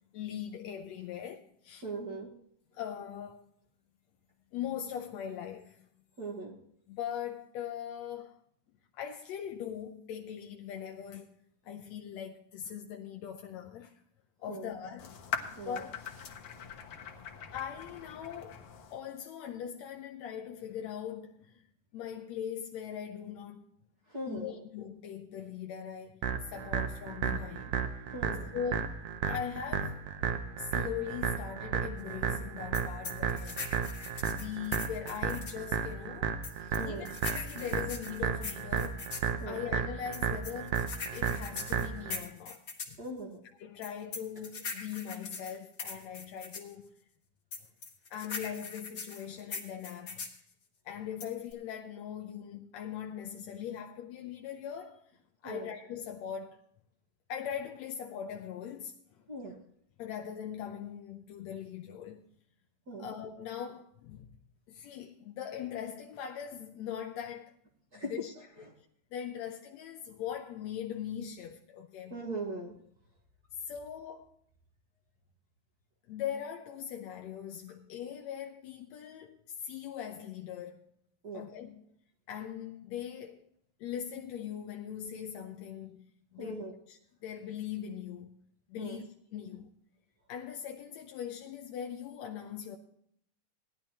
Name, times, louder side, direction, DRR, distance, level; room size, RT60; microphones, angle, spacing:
voice 1, 0.1-1.8 2.7-3.4 4.5-5.9 6.9-8.4 8.9-11.4 11.6-13.9 14.4-15.1 15.5-15.9 17.5-18.6 18.9-21.6 21.9-23.6 24.3-27.8 28.5-30.0 30.6-33.7 34.0-36.3 36.8-39.0 39.5-40.8 41.1-43.0 43.6-46.9 48.1-50.3 50.8-55.1 55.4-56.6 57.3-59.2 60.0-62.3 63.0-64.3 64.7-67.5 67.9-68.9 69.1-72.2 73.7-74.3 76.1-80.8 81.3-81.9 82.3-83.4 83.8-89.7 90.3-92.8, left 9 dB, 75° left, 1.7 m, -41 dB
voice 2, 1.8-2.3 6.2-6.6 14.5-14.7 15.6-15.8 24.1-24.6 28.1-28.5 36.6-37.1 39.4-39.6 43.0-43.4 55.4-55.7 59.3-59.5 62.9-63.1 67.9-68.1 72.1-72.7 81.2-81.4 86.4-86.8 88.8-89.0, right 2 dB, 40° right, 1.5 m, -40 dB
sound 1, 15.0-19.0, left 7 dB, 60° left, 1.8 m, -42 dB
sound 2, 26.2-42.2, right 7 dB, 65° right, 1.8 m, -34 dB
sound 3, 32.7-35.6 36.4-39.3 40.1-43.0 43.8-46.7 47.5-50.4 51.2-51.5, left 4 dB, 40° left, 1.6 m, -41 dB
18.0 x 11.0 x 2.9 m
omnidirectional pair, 3.8 m